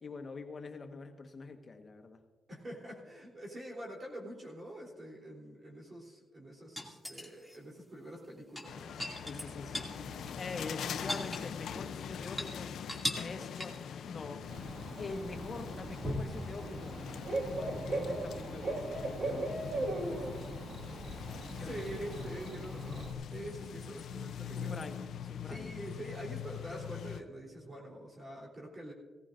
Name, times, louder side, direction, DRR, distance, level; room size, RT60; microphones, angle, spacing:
voice 1, 0.0-2.2 9.2-9.9 10.4-12.8 13.2-14.4 15.0-17.0 17.4-20.4 21.5-21.8 24.5-25.7, left 3 dB, 45° left, 5 dB, 1.4 m, -45 dB
voice 2, 2.5-10.3 21.6-24.9 25.5-28.9, right 1 dB, 35° right, -2 dB, 3.5 m, -46 dB
sound 1, 6.8-7.6 8.4-10.0 10.3-10.4 10.7-11.9 12.2-12.5 12.9-13.3 13.6-13.9 16.0-16.4 18.1-18.2, left 1 dB, 5° right, 2.5 m, -38 dB
sound 2, 8.6-27.2, left 8 dB, 75° left, 0.6 m, -43 dB
Bird / Cricket, 14.5-23.1, right 2 dB, 55° right, 2.0 m, -39 dB
17.5 x 14.5 x 2.6 m, 1.3 s
cardioid pair, 75°, 0 cm